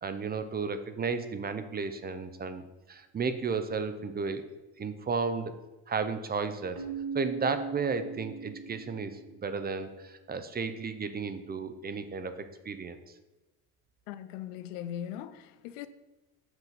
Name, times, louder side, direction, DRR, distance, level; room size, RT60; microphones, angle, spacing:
voice 1, 0.0-4.4 4.8-5.5 5.9-6.8 7.1-13.0, right 5 dB, 25° right, 0.6 m, -33 dB
Keyboard (musical), 6.8-9.4, right 5 dB, 55° right, 1.3 m, -39 dB
voice 2, 14.1-15.9, left 10 dB, 85° left, 0.5 m, -39 dB
5.9 x 3.8 x 5.8 m
supercardioid pair, 85°, 38 cm